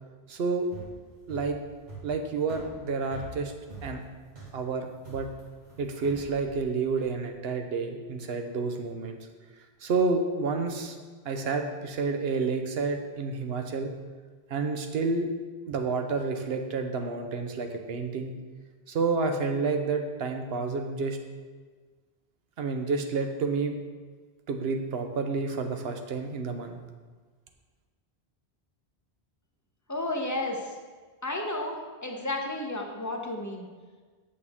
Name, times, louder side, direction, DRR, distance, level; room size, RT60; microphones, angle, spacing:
voice 1, 0.3-0.7 1.3-1.6 2.0-3.5 3.8-4.0 4.5-5.3 5.8-9.2 9.8-11.0 11.2-13.9 14.5-15.3 15.7-18.4 18.9-21.2 22.6-23.8 24.5-26.8, right 4 dB, 75° right, 5 dB, 1.0 m, -29 dB
sound 1, 0.6-7.1, right 2 dB, 45° right, 2.0 m, -45 dB
voice 2, 29.9-30.7 31.2-33.7, left 2 dB, 20° left, 1 dB, 0.8 m, -32 dB
8.4 x 6.4 x 3.6 m, 1.4 s
omnidirectional pair, 1.1 m